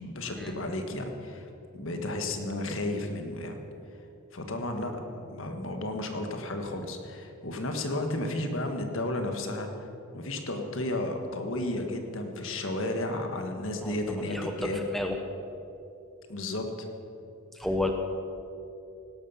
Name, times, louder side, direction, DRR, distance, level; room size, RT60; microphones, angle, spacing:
voice 1, 0.0-1.5 1.7-3.6 4.3-9.9 10.1-14.8 16.3-16.9, left 1 dB, 60° left, 5 dB, 1.6 m, -33 dB
voice 2, 13.8-15.2 17.5-17.9, left 1 dB, ahead, 3 dB, 0.9 m, -32 dB
18.0 x 11.5 x 5.8 m, 2.8 s
head